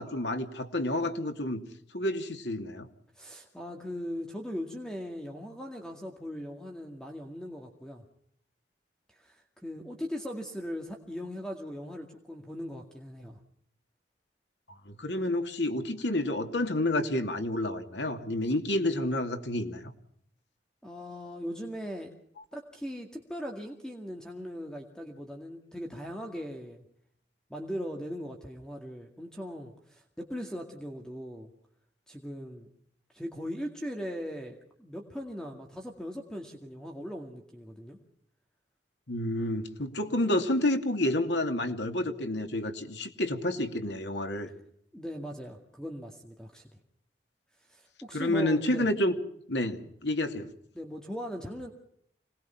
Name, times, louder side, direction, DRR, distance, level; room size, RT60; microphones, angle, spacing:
voice 1, 0.0-1.6 1.9-2.9 14.9-19.9 39.1-44.5 48.1-49.2 49.5-50.5, left 1 dB, 85° left, 6 dB, 2.8 m, -29 dB
voice 2, 3.2-8.0 9.2-13.4 20.8-22.1 22.5-26.8 27.5-31.5 32.1-32.7 33.1-38.0 44.9-46.8 47.7-48.9 50.7-51.7, equal, 5° left, 2 dB, 2.2 m, -39 dB
26.5 x 20.0 x 5.8 m, 0.68 s
head